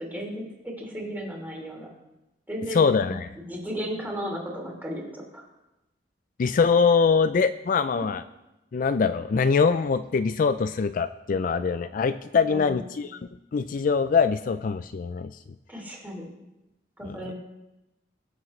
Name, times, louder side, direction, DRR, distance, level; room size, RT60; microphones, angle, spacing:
voice 1, 0.0-1.9 2.5-5.5 12.5-12.9 15.7-16.3 17.0-17.3, equal, 10° right, -1 dB, 2.9 m, -35 dB
voice 2, 2.7-3.3 6.4-8.2 8.7-13.2 13.5-15.3 17.0-17.3, left 5 dB, 50° left, 11 dB, 0.4 m, -23 dB
21.5 x 7.3 x 3.2 m, 0.96 s
head